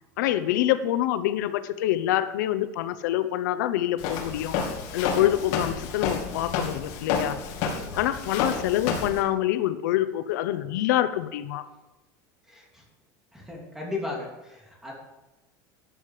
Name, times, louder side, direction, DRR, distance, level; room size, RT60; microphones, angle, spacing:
voice 1, 0.2-4.6 4.9-7.4 7.9-11.7, left 13 dB, 85° left, 12 dB, 0.8 m, -26 dB
Walk footsteps, 4.0-9.2, left 6 dB, 55° left, 2.6 m, -30 dB
voice 2, 12.5-12.8 13.3-14.9, left 3 dB, 5° right, -2 dB, 3.0 m, -36 dB
13.5 x 9.4 x 4.9 m, 1.1 s
cardioid pair, 170°, 10 cm